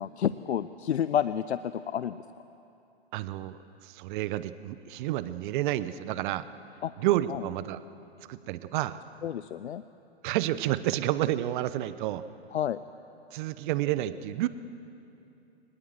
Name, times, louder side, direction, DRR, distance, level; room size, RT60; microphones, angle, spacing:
voice 1, 0.0-2.2 6.8-6.9 7.3-7.4 9.2-9.8 12.5-12.8, left 9 dB, 80° left, 14 dB, 0.6 m, -30 dB
voice 2, 3.1-3.6 3.8-6.4 7.0-7.8 8.3-9.0 10.2-12.2 13.3-14.5, right 14 dB, 50° right, 14 dB, 1.0 m, -30 dB
23.5 x 20.0 x 7.9 m, 2.8 s
hypercardioid pair, 110°, 33 cm